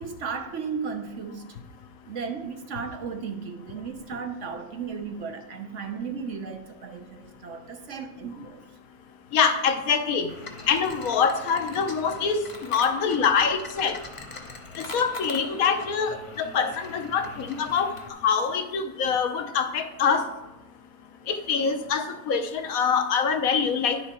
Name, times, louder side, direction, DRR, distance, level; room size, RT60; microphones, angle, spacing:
voice 1, 0.0-1.6 2.1-8.7, right 5 dB, 60° right, 6 dB, 0.9 m, -35 dB
voice 2, 9.3-10.3 10.7-12.4 12.7-14.0 14.8-20.2 21.3-24.0, left 6 dB, 70° left, 7 dB, 1.2 m, -25 dB
sound 1, 10.3-18.1, left 3 dB, 30° left, 0.6 m, -41 dB
10.5 x 6.0 x 4.3 m, 0.96 s
omnidirectional pair, 1.6 m